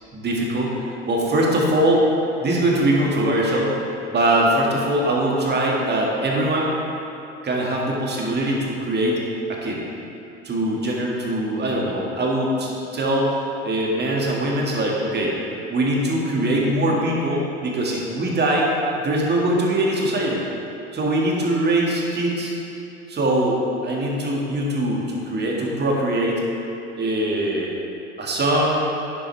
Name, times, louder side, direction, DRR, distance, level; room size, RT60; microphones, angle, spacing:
voice 1, 0.1-2.1 2.4-3.8 4.1-6.7 7.4-9.2 9.5-9.8 10.4-15.3 15.7-20.4 20.9-22.5 23.1-26.4 26.9-27.7 28.2-28.8, right 1 dB, 30° right, -2 dB, 1.9 m, -22 dB
10.0 x 7.4 x 3.3 m, 2.8 s
figure-of-eight pair, 70°, 35 cm